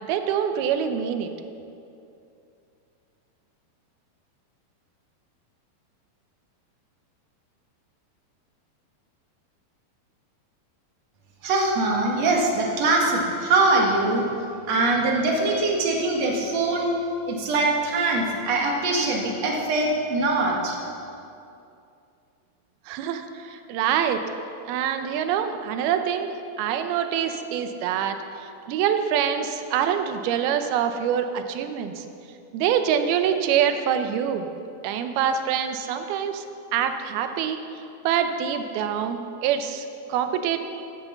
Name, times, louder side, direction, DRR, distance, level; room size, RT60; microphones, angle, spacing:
voice 1, 0.1-1.3 22.9-24.2 24.7-26.3 26.6-28.2 28.7-32.0 32.5-34.5 34.8-36.4 36.7-37.6 38.0-40.6, right 8 dB, 80° right, 8 dB, 2.6 m, -25 dB
voice 2, 11.4-14.3 14.7-16.9 17.3-20.8, right 2 dB, 50° right, -1 dB, 2.6 m, -22 dB
15.0 x 8.2 x 7.0 m, 2.6 s
omnidirectional pair, 4.5 m